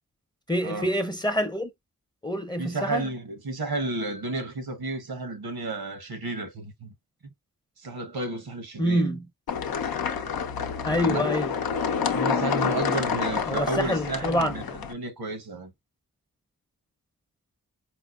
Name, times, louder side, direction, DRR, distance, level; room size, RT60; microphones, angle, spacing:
voice 1, 0.5-1.7 2.2-3.1 8.8-9.3 10.8-11.6 13.5-14.8, equal, 10° left, 0.6 m, -26 dB
voice 2, 2.6-6.9 7.8-9.1 11.0-11.3 12.0-14.6 14.9-15.7, right 2 dB, 80° right, 1.0 m, -32 dB
sound 1, 9.5-14.9, left 6 dB, 80° left, 0.6 m, -28 dB
4.4 x 2.0 x 2.3 m
cardioid pair, 40°, 36 cm